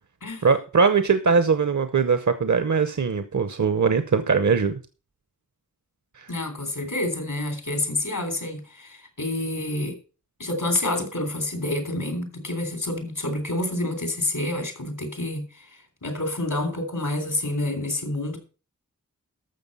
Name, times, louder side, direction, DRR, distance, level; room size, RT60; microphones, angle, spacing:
voice 1, 0.4-4.8 6.2-6.3, right 5 dB, 65° right, 0.9 m, -21 dB
voice 2, 6.3-9.9 10.4-15.7 16.0-18.4, left 1 dB, 90° left, 3.3 m, -28 dB
13.0 x 6.6 x 5.4 m
wide cardioid pair, 50°, 31 cm